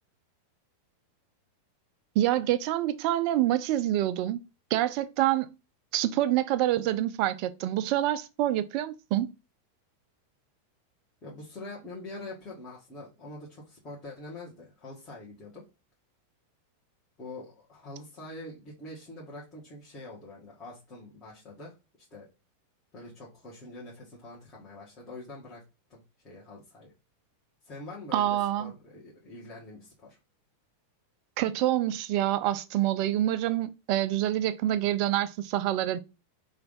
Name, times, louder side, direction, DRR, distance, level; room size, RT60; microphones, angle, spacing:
voice 1, 2.2-4.4 4.7-5.5 5.9-9.3 28.1-28.7 31.4-36.0, right 13 dB, 45° right, 0.4 m, -26 dB
voice 2, 11.2-15.6 17.2-22.3 22.9-25.6 25.9-26.9 27.6-30.2, left 2 dB, 25° left, 1.5 m, -45 dB
3.3 x 2.6 x 3.9 m
figure-of-eight pair, 90°, 0 cm